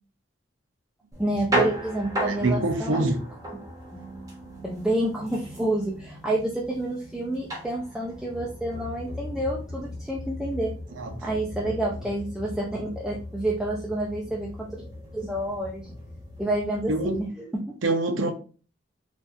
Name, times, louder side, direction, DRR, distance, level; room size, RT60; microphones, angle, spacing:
sound 1, 1.1-17.3, right 1 dB, 20° right, 0.9 m, -36 dB
voice 1, 1.2-3.1 3.5-3.6 4.6-10.7 11.2-14.8 15.1-15.9 16.4-17.7, right 1 dB, 5° right, 0.5 m, -29 dB
voice 2, 2.3-3.2 11.0-11.1 16.9-17.1 17.8-18.3, right 2 dB, 90° right, 0.6 m, -25 dB
4.0 x 2.5 x 2.4 m
head